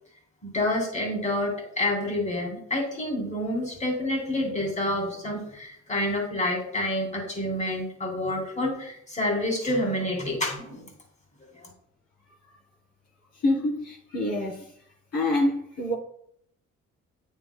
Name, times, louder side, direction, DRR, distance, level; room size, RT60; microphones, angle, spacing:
voice 1, 0.4-10.8 11.5-11.7, left 1 dB, 25° left, 0 dB, 2.9 m, -28 dB
voice 2, 13.4-14.7 15.1-15.9, left 1 dB, 55° left, -3 dB, 3.0 m, -26 dB
9.1 x 7.2 x 2.2 m, 0.69 s
cardioid pair, 90°, 30 cm